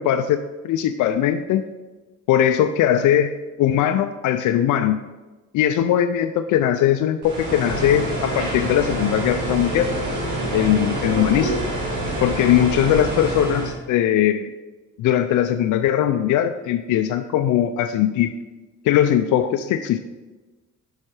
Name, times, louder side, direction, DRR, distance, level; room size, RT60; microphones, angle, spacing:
voice 1, 0.0-1.6 2.3-5.0 5.5-9.9 10.5-11.6 12.2-14.5 15.0-18.3 18.8-20.0, left 10 dB, 80° left, 8 dB, 0.5 m, -20 dB
sound 1, 7.2-13.7, right 1 dB, 75° right, 2.5 m, -26 dB
7.3 x 5.6 x 4.8 m, 1.2 s
cardioid pair, 90°, 30 cm